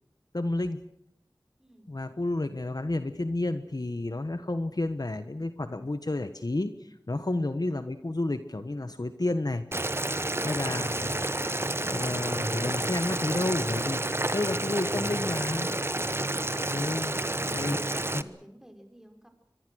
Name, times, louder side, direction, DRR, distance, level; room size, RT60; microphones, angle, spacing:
voice 1, 0.3-0.8 1.9-9.6 10.4-11.3 11.9-14.0 14.3-15.8 16.7-17.2 17.5-17.8 18.1-18.2, left 2 dB, 55° left, 9 dB, 1.4 m, -31 dB
voice 2, 1.6-1.9 7.1-7.5 17.4-19.3, equal, 5° right, 4 dB, 5.6 m, -54 dB
Boiling, 9.7-18.2, right 1 dB, 30° right, 1.1 m, -30 dB
25.5 x 23.5 x 6.5 m, 0.75 s
wide cardioid pair, 45°, 8 cm